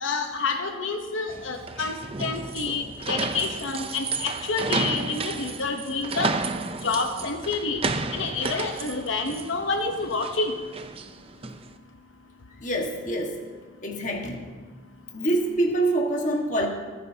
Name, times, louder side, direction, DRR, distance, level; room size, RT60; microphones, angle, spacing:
voice 1, 0.0-6.3 6.8-7.8 8.1-10.6, left 4 dB, 85° left, 5 dB, 1.0 m, -28 dB
sound 1, 1.3-11.7, right 3 dB, 30° right, 0.6 m, -32 dB
voice 2, 12.6-13.4 13.8-14.5 15.1-16.7, right 1 dB, 40° left, 1 dB, 1.6 m, -25 dB
26.5 x 9.3 x 2.8 m, 1.4 s
head